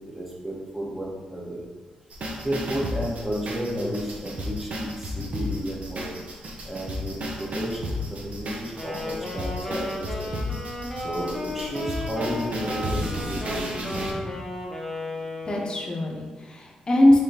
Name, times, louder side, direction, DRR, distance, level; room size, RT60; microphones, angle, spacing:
voice 1, 0.1-1.7 2.4-6.2 6.6-10.4 11.0-14.0, equal, 10° right, -4 dB, 1.1 m, -32 dB
sound 1, 2.1-14.1, equal, 60° right, 0.7 m, -33 dB
Wind instrument woodwind instrument, 8.8-16.0, left 1 dB, 10° left, 0.9 m, -34 dB
voice 2, 14.0-14.4 15.4-17.2, left 1 dB, 35° left, -1 dB, 0.8 m, -23 dB
3.5 x 3.4 x 2.8 m, 1.3 s
supercardioid pair, 60°, 3 cm